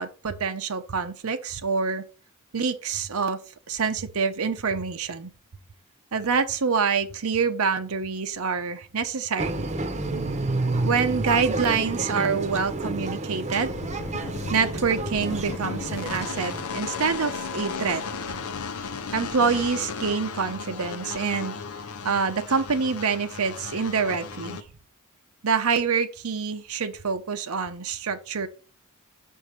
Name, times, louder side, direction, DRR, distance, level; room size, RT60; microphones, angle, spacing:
voice 1, 0.0-2.0 2.5-3.4 3.7-5.3 6.1-9.7 10.8-13.7 14.5-18.0 19.1-21.5 22.0-24.6 25.4-28.5, right 5 dB, 80° right, 0.8 m, -26 dB
sound 1, 9.4-16.6, right 2 dB, 30° right, 0.9 m, -30 dB
sound 2, 13.6-24.6, left 5 dB, 80° left, 0.8 m, -35 dB
6.3 x 4.7 x 5.1 m
head